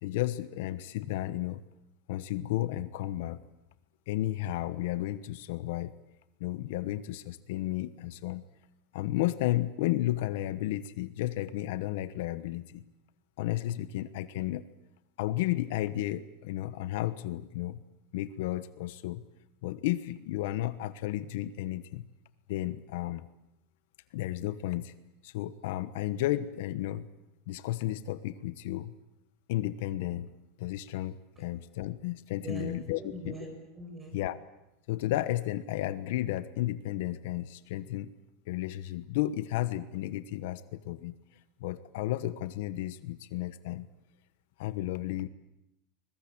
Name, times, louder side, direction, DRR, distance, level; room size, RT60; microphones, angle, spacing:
voice 1, 0.0-1.6 2.1-3.4 4.1-5.9 6.4-8.4 8.9-12.8 13.4-14.6 15.2-17.8 18.1-19.2 19.6-22.0 22.5-23.2 24.1-24.9 25.2-27.1 27.5-28.9 29.5-30.3 30.6-33.4 34.1-34.4 34.9-38.1 38.5-41.1 41.6-43.9 44.6-45.3, left 14 dB, 65° left, 14 dB, 1.1 m, -33 dB
voice 2, 32.4-34.2, right 2 dB, 15° right, 5 dB, 5.4 m, -41 dB
24.5 x 22.0 x 8.8 m, 0.85 s
supercardioid pair, 170°, 0 cm